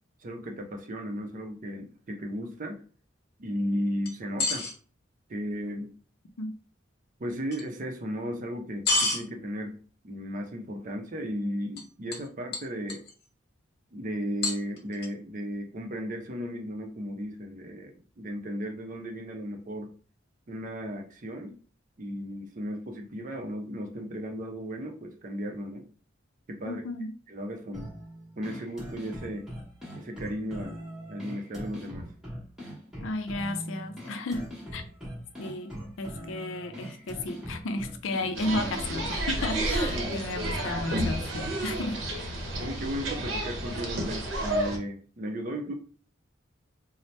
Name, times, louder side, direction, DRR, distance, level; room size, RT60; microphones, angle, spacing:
voice 1, 0.2-2.8 3.4-4.7 5.3-5.9 7.2-13.0 13.9-19.9 20.5-21.6 22.0-25.9 26.5-26.8 27.3-27.9 28.4-29.5 29.9-30.8 31.1-32.1 39.9-40.2 42.6-45.7, equal, 45° right, 0.5 m, -35 dB
sound 1, 4.1-4.7 7.5-7.6 8.9-9.2 11.8-11.9 12.1-12.3 12.5-13.1 14.4-15.1, left 3 dB, 55° left, 0.7 m, -28 dB
voice 2, 26.6-27.1 33.0-34.5 34.7-34.8 35.4-42.4, left 2 dB, 90° left, 0.4 m, -33 dB
sound 2, 27.7-38.7, equal, 5° right, 1.1 m, -41 dB
sound 3, 38.3-44.8, right 1 dB, 80° right, 0.7 m, -31 dB
2.7 x 2.0 x 3.2 m
head